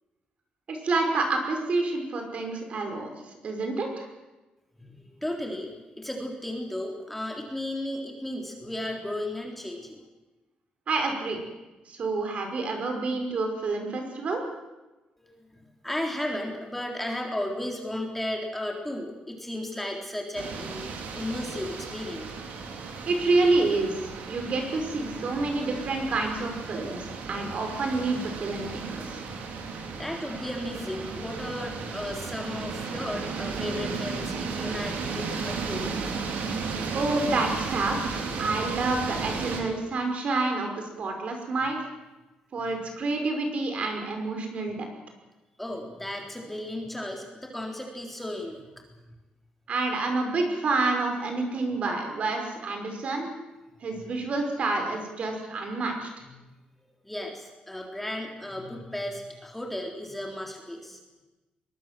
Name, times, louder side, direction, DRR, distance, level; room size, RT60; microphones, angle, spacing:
voice 1, 0.7-4.1 10.9-11.4 11.9-14.4 23.1-29.2 36.9-41.8 42.5-44.9 49.7-53.3 53.8-56.1, right 3 dB, 50° right, 4 dB, 5.7 m, -28 dB
voice 2, 4.8-5.7 6.0-10.0 15.2-20.8 21.1-22.3 29.9-35.9 45.6-48.7 53.9-54.1 57.0-61.0, left 1 dB, 5° left, 0 dB, 3.9 m, -34 dB
sound 1, 20.3-39.6, right 4 dB, 90° right, 4.4 m, -34 dB
23.5 x 21.5 x 7.7 m, 1.1 s
cardioid pair, 135°, 3 cm